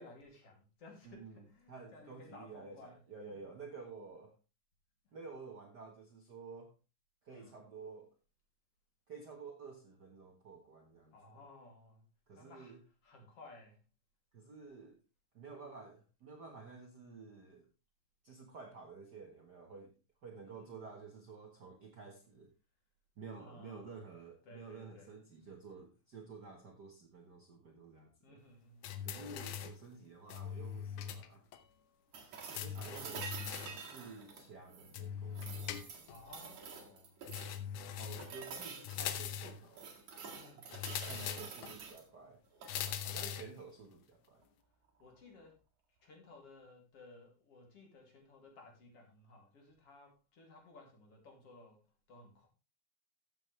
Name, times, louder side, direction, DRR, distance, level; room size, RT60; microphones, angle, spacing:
voice 1, 0.0-3.0 3.3-3.7 7.3-7.5 11.1-12.1 12.3-12.7 13.0-13.8 20.4-20.8 23.4-23.9 24.4-25.1 28.2-29.0 36.1-37.2 40.3-41.0 45.0-45.6 46.0-51.8 52.1-52.5, left 2 dB, 50° left, 1 dB, 3.5 m, -57 dB
voice 2, 1.0-4.4 5.1-6.7 7.2-8.1 9.1-11.1 12.3-12.8 14.3-15.0 15.3-17.7 18.2-19.9 20.2-22.5 23.2-28.4 29.0-31.5 32.5-33.3 33.8-35.8 38.0-39.9 41.0-42.4 43.0-44.4, right 4 dB, 45° right, 1 dB, 1.5 m, -51 dB
sound 1, 28.8-29.8 30.3-31.3 31.5-31.6 32.5-33.8 34.9-36.2 37.3-38.4 38.8-39.6 40.7-41.7 42.7-43.6, left 9 dB, 85° left, 2.4 m, -41 dB
sound 2, 32.1-35.0 35.3-37.6 38.2-39.0 39.4-42.0 42.5-43.0 45.0-45.1, right 5 dB, 70° right, 3.3 m, -48 dB
14.0 x 7.6 x 3.2 m, 0.29 s
omnidirectional pair, 3.4 m